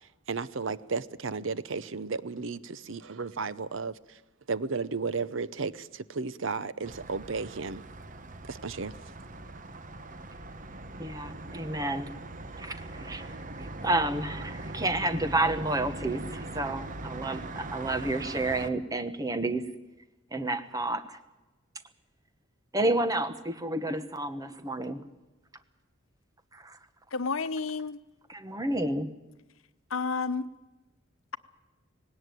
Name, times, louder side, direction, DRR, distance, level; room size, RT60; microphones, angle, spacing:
voice 1, 0.3-4.2 4.5-7.8 8.5-8.9, right 4 dB, 70° right, 17 dB, 0.8 m, -34 dB
sound 1, 6.8-18.7, right 2 dB, 40° right, 1.0 m, -41 dB
voice 2, 11.0-12.1 12.6-13.3 13.6-19.6 20.3-21.2 22.7-25.0 26.5-26.8 28.3-29.1, right 2 dB, 15° right, 10 dB, 1.1 m, -30 dB
voice 3, 27.1-28.0 29.9-30.5, left 4 dB, 80° left, 13 dB, 0.9 m, -30 dB
19.0 x 17.5 x 9.2 m, 1.1 s
head